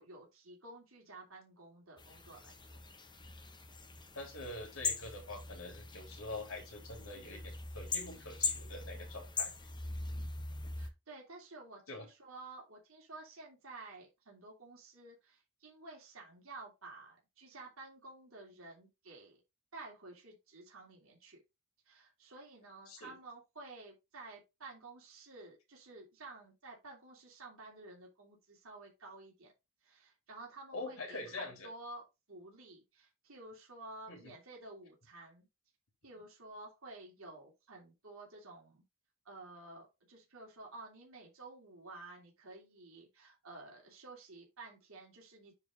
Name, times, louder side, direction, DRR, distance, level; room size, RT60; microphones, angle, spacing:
voice 1, 0.0-2.8 10.8-19.4 19.7-21.4 21.8-29.5 29.8-35.5 36.0-38.8 39.2-45.5, right 2 dB, 75° right, -2 dB, 3.0 m, -52 dB
sound 1, 2.0-10.9, left 4 dB, 20° left, 1.0 m, -41 dB
voice 2, 4.1-9.7 11.9-12.1 22.9-23.1 30.7-31.7 34.1-34.2, left 2 dB, 80° left, 2 dB, 3.4 m, -45 dB
9.6 x 3.9 x 4.0 m, 0.24 s
head